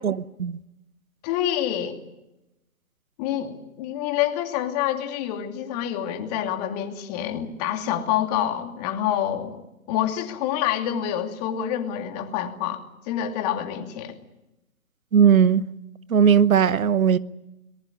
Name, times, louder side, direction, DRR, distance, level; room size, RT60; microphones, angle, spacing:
voice 1, 0.0-0.6 15.1-15.7 16.1-17.2, right 7 dB, 75° right, 1.1 m, -18 dB
voice 2, 1.2-2.0 3.2-9.6 9.9-14.2, left 11 dB, 30° left, 2.7 m, -27 dB
22.5 x 20.0 x 9.8 m
hypercardioid pair, 140°, 41 cm